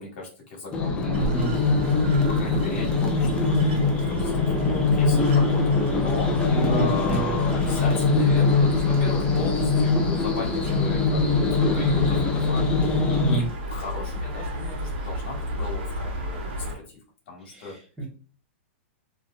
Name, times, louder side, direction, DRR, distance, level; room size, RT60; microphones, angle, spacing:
voice 1, 0.0-1.0 1.8-6.3 6.6-16.8 17.3-17.7, left 3 dB, 55° left, -3 dB, 1.4 m, -36 dB
sound 1, 0.7-13.4, left 3 dB, 15° left, 0.4 m, -22 dB
voice 2, 1.0-1.6 6.5-7.3 13.1-13.5 17.5-18.0, right 3 dB, 10° right, -4 dB, 1.1 m, -28 dB
sound 2, 1.1-16.8, equal, 70° right, 1.1 m, -33 dB
3.0 x 2.6 x 2.3 m, 0.37 s
supercardioid pair, 160°, 7 cm